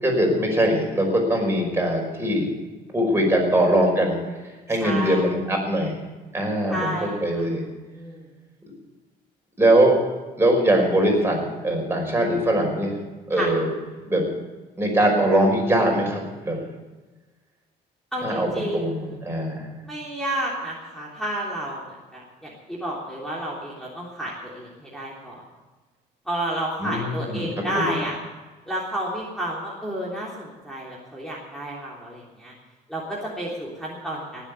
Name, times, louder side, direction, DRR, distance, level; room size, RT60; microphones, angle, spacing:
voice 1, 0.0-2.5 2.9-4.2 4.7-6.0 6.3-7.6 9.6-10.0 10.4-12.9 13.3-13.7 14.1-14.2 14.8-16.6 18.2-19.7 26.8-27.5 27.7-28.0, right 1 dB, 15° right, 1 dB, 5.4 m, -21 dB
voice 2, 4.8-5.3 6.7-7.5 7.9-8.3 13.3-13.5 18.1-19.2 19.8-25.4 26.3-28.2 28.7-32.5 32.9-34.5, right 1 dB, ahead, -5 dB, 3.4 m, -31 dB
19.0 x 8.2 x 8.5 m, 1.2 s
cardioid pair, 110°, 17 cm